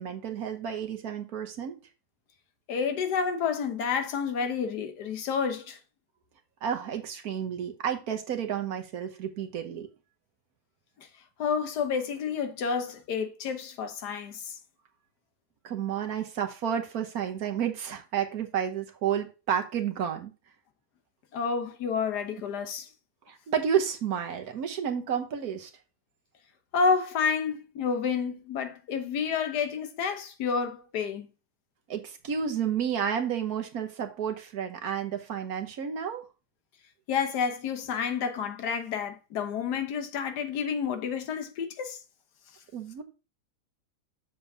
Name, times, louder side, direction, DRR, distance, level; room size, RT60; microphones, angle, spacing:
voice 1, 0.0-1.8 6.6-9.9 15.6-20.3 23.3-25.7 31.9-36.2 42.7-43.0, right 8 dB, 65° right, 1.4 m, -31 dB
voice 2, 2.7-5.8 11.0-11.1 11.4-14.6 21.3-22.9 26.7-31.3 37.1-42.0, left 6 dB, 75° left, 1.5 m, -29 dB
7.2 x 6.9 x 2.7 m
omnidirectional pair, 1.8 m